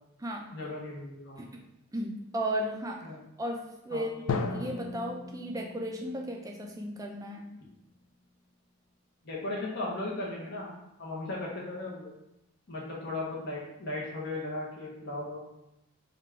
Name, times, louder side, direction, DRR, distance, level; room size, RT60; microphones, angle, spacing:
voice 1, 0.5-1.4 3.0-3.2 3.9-4.1 9.2-10.7 11.0-12.1 12.7-15.4, left 2 dB, 50° left, -4 dB, 0.9 m, -36 dB
voice 2, 1.9-3.0 3.4-7.5, equal, 15° right, 1 dB, 0.4 m, -35 dB
Drum, 4.3-8.0, left 4 dB, 65° left, 0.3 m, -37 dB
3.9 x 2.3 x 4.5 m, 0.88 s
head